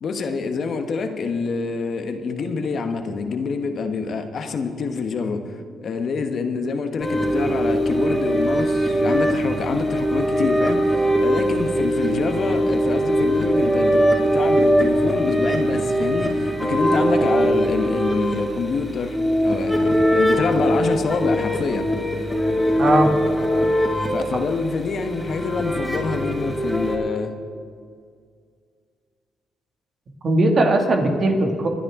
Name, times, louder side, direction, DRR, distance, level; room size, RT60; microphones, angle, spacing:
voice 1, 0.0-21.9 24.1-27.3, left 4 dB, 55° left, 7 dB, 1.2 m, -26 dB
sound 1, 7.0-27.0, equal, ahead, 3.2 m, -21 dB
voice 2, 22.8-23.1 30.2-31.7, right 1 dB, 50° right, 2 dB, 2.2 m, -18 dB
24.0 x 10.0 x 3.7 m, 2.1 s
cardioid pair, 90°, 0 cm